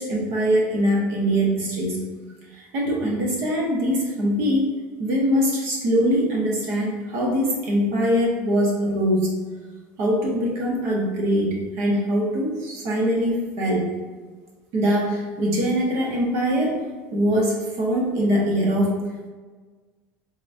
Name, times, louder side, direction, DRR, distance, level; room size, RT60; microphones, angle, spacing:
voice 1, 0.0-2.1 2.7-4.7 5.0-9.4 10.0-13.9 14.7-16.8 17.1-19.0, equal, 60° right, -2 dB, 1.3 m, -22 dB
4.1 x 3.6 x 2.6 m, 1.4 s
cardioid pair, 150°, 6 cm